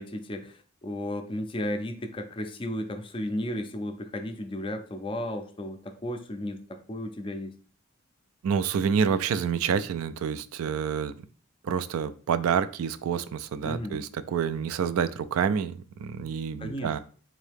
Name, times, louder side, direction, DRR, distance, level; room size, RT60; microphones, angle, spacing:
voice 1, 0.0-7.5 13.6-14.0 16.6-17.0, left 1 dB, 25° left, 6 dB, 0.4 m, -34 dB
voice 2, 8.4-11.1 11.6-17.0, right 7 dB, 75° right, 14 dB, 0.3 m, -28 dB
3.7 x 2.7 x 3.4 m, 0.41 s
head